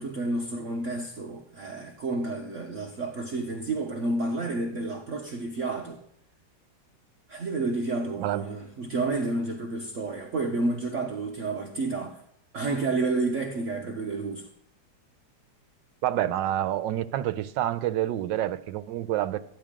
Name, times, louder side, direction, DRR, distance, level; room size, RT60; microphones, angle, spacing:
voice 1, 0.0-6.0 7.3-12.2 12.5-14.5, right 3 dB, 50° right, 1.1 m, -30 dB
voice 2, 16.0-19.4, right 12 dB, 80° right, 1.3 m, -28 dB
14.0 x 10.5 x 3.7 m
omnidirectional pair, 2.0 m